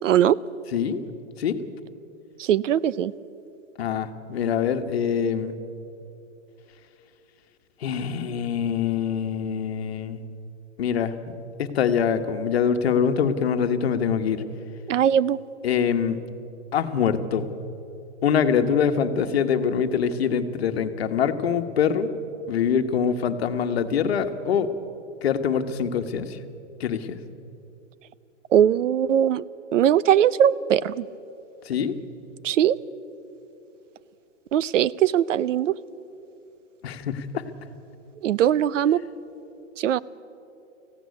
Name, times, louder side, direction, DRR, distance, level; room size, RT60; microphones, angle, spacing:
voice 1, 0.0-0.4 2.4-3.1 14.9-15.4 28.5-29.4 29.7-31.0 32.4-32.8 34.5-35.8 38.2-39.0 39.8-40.0, right 10 dB, 75° right, 20 dB, 0.7 m, -20 dB
voice 2, 3.8-5.5 7.8-10.2 10.8-11.3 11.6-14.4 15.6-16.2 16.7-17.5 18.2-22.1 22.5-24.7 25.2-26.4 26.8-27.2 31.6-32.0 36.8-37.4, left 7 dB, 55° left, 8 dB, 1.3 m, -24 dB
18.0 x 15.5 x 9.6 m, 2.8 s
hypercardioid pair, 180°, 37 cm